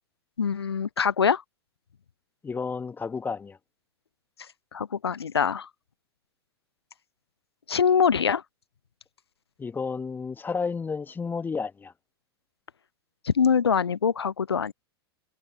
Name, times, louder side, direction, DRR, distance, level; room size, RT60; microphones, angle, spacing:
voice 1, 0.4-1.4 4.7-5.7 7.7-8.4 13.3-14.7, left 6 dB, 75° left, 0.5 m, -23 dB
voice 2, 2.4-3.6 9.6-11.9, left 5 dB, 15° left, 1.5 m, -31 dB
figure-of-eight pair, 90°, 13 cm